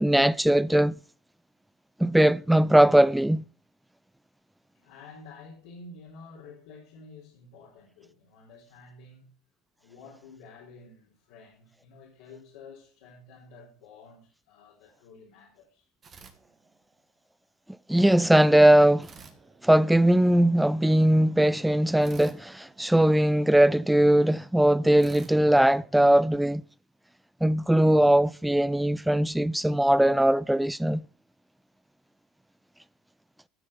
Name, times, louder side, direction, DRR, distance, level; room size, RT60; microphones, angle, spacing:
voice 1, 0.0-0.9 2.0-3.4 17.9-19.1 19.6-26.6 27.4-31.0, right 1 dB, 5° right, 0.4 m, -20 dB
voice 2, 4.7-9.3 9.8-15.8, left 3 dB, 75° left, 3.9 m, -50 dB
sound 1, 16.0-17.2 19.0-20.4 22.0-23.7 25.0-26.5, right 5 dB, 35° right, 2.1 m, -53 dB
13.5 x 6.6 x 5.7 m
hypercardioid pair, 85°, 0 cm